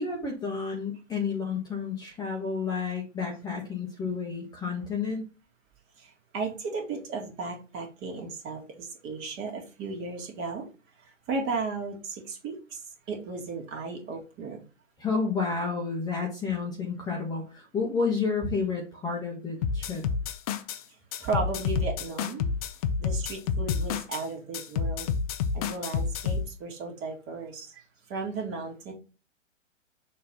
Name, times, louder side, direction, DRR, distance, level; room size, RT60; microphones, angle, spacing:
voice 1, 0.0-5.2 15.0-20.0, left 5 dB, 10° left, -1 dB, 1.1 m, -30 dB
voice 2, 6.3-10.7 11.3-12.6 13.1-14.6 21.2-22.4 23.0-25.2 25.5-27.8 28.1-28.9, right 3 dB, 30° right, 0 dB, 2.3 m, -34 dB
sound 1, 19.6-20.8 21.1-24.2 24.5-26.5, left 6 dB, 30° left, 0.6 m, -29 dB
6.6 x 3.2 x 5.5 m, 0.33 s
figure-of-eight pair, 120°, 38 cm